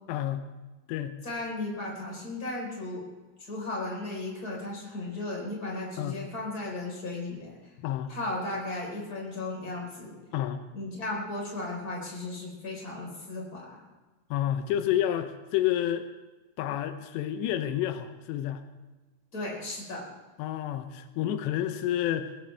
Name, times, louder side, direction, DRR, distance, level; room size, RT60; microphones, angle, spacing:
voice 1, 0.1-0.4 0.9-1.2 6.0-6.2 7.8-8.1 10.3-10.6 14.3-16.1 16.6-18.6 20.4-22.3, left 11 dB, 90° left, 8 dB, 3.1 m, -29 dB
voice 2, 1.2-3.0 3.4-7.5 8.1-10.1 10.7-13.8 19.3-20.0, left 2 dB, 20° left, -2 dB, 4.7 m, -35 dB
21.5 x 16.0 x 3.4 m, 1.2 s
omnidirectional pair, 4.9 m